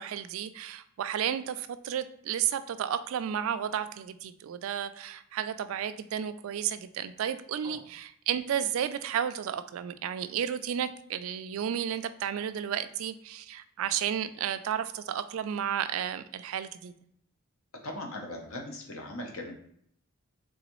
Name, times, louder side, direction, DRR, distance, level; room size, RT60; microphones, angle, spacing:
voice 1, 0.0-16.9, right 9 dB, 70° right, 12 dB, 0.3 m, -32 dB
voice 2, 17.8-19.5, left 1 dB, 70° left, 2 dB, 0.7 m, -39 dB
3.9 x 3.4 x 3.0 m, 0.68 s
head